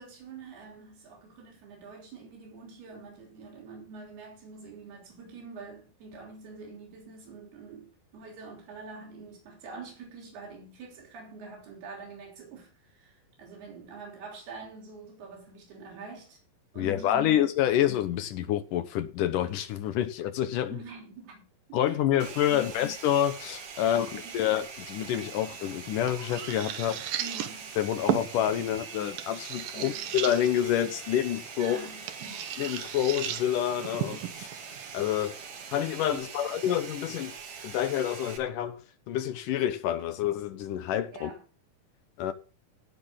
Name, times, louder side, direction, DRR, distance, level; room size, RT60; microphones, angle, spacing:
voice 1, 0.0-16.4 16.7-17.4 17.7-17.9 20.7-21.4 21.7-23.0 23.8-24.4 27.2-27.8 29.7-30.1 31.6-32.5 36.1-36.6 41.1-41.4, right 4 dB, 90° right, 5.4 m, -45 dB
voice 2, 16.8-20.8 21.7-27.0 27.8-31.8 32.6-34.5 34.9-35.4 35.7-37.4 37.6-38.8 39.1-41.3 42.2-42.3, left 11 dB, 70° left, 2.3 m, -28 dB
Domestic sounds home sounds, 22.2-38.4, right 6 dB, 50° right, 2.2 m, -43 dB
sound 1, 25.2-36.2, right 10 dB, 70° right, 2.6 m, -37 dB
17.5 x 6.6 x 3.8 m
omnidirectional pair, 4.4 m